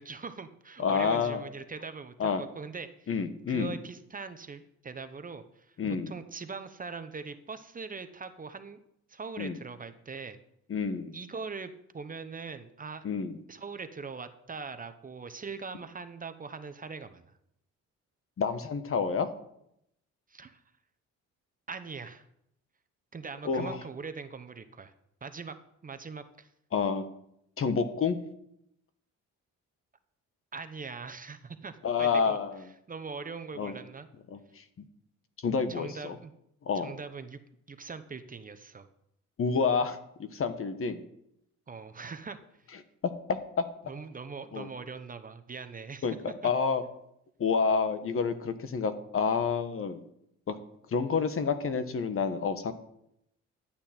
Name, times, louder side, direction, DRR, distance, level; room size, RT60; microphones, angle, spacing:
voice 1, 0.0-3.1 3.5-5.8 6.1-8.8 9.1-10.4 11.1-13.1 13.5-17.3 20.3-20.6 21.7-22.2 23.1-24.9 25.2-25.6 25.8-26.5 30.5-32.4 32.9-34.1 35.7-36.3 36.7-37.4 37.7-38.9 41.7-42.4 43.9-46.1, right 4 dB, 30° right, 9 dB, 0.8 m, -41 dB
voice 2, 0.8-1.4 2.2-2.4 3.1-3.7 5.8-6.1 9.4-9.6 10.7-11.2 13.0-13.4 18.4-19.3 23.4-23.8 26.7-27.0 27.6-28.2 31.8-32.6 33.6-33.8 34.3-34.6 35.4-36.2 36.6-36.9 39.4-41.0 43.3-43.6 44.5-44.7 46.0-46.8 47.4-50.0 50.5-50.6 50.9-52.7, left 5 dB, 45° left, 11 dB, 1.2 m, -29 dB
12.0 x 8.7 x 4.4 m, 0.78 s
cardioid pair, 90°, 30 cm